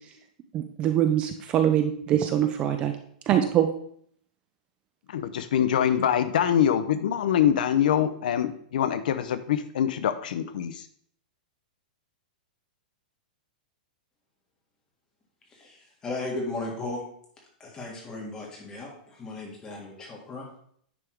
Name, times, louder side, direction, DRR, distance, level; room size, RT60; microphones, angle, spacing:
voice 1, 0.5-2.9 3.3-3.7, right 10 dB, 20° right, 7 dB, 0.4 m, -23 dB
voice 2, 5.1-10.9, left 9 dB, 65° left, 12 dB, 0.5 m, -24 dB
voice 3, 15.5-17.0 17.6-20.6, left 2 dB, 15° left, -1 dB, 1.6 m, -36 dB
9.9 x 3.5 x 4.5 m, 0.64 s
supercardioid pair, 165°, 5 cm